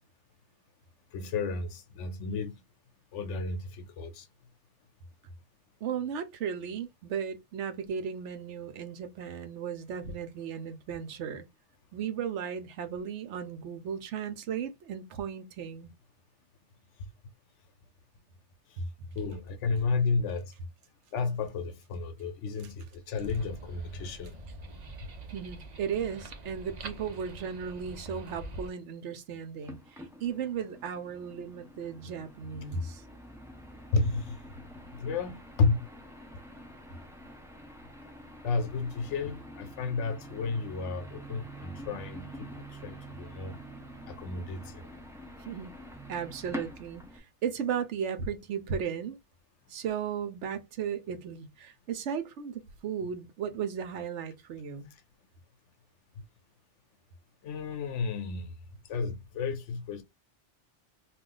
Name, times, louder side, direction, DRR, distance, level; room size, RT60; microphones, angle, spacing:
voice 1, 1.1-2.6 3.1-4.3 19.2-20.5 21.1-24.4 33.9-34.4 34.9-35.8 38.4-43.6 44.1-44.9 57.4-58.5 58.9-60.0, left 4 dB, 85° left, 1.0 m, -32 dB
voice 2, 5.8-11.4 11.9-15.9 18.8-18.9 25.3-33.0 45.4-45.7 46.1-49.2 49.7-54.9, right 7 dB, 75° right, 1.0 m, -35 dB
sound 1, 23.2-28.7, right 2 dB, 45° right, 0.6 m, -44 dB
sound 2, 29.6-47.2, right 1 dB, 5° right, 0.3 m, -46 dB
2.4 x 2.4 x 3.8 m
omnidirectional pair, 1.2 m